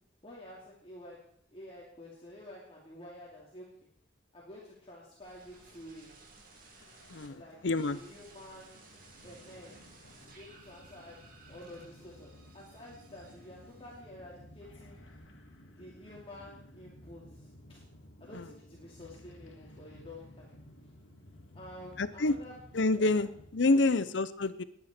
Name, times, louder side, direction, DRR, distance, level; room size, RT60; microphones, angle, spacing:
voice 1, 0.2-1.2 1.5-3.6 4.3-6.1 7.3-7.6 7.8-8.8 9.2-9.8 10.2-11.2 11.5-15.0 15.8-17.8 18.2-20.6 21.5-22.5 22.9-23.2 23.7-24.0, left 1 dB, 30° left, -5 dB, 2.7 m, -50 dB
sound 1, 5.2-7.3 7.7-14.3 14.6-15.2, right 3 dB, 45° right, 2.7 m, -58 dB
sound 2, 6.3-23.5, left 1 dB, 85° left, 2.5 m, -55 dB
voice 2, 7.6-8.0 18.3-18.4 22.0-22.3 22.7-24.6, left 2 dB, 65° left, 15 dB, 0.7 m, -27 dB
20.5 x 9.6 x 4.4 m, 0.66 s
head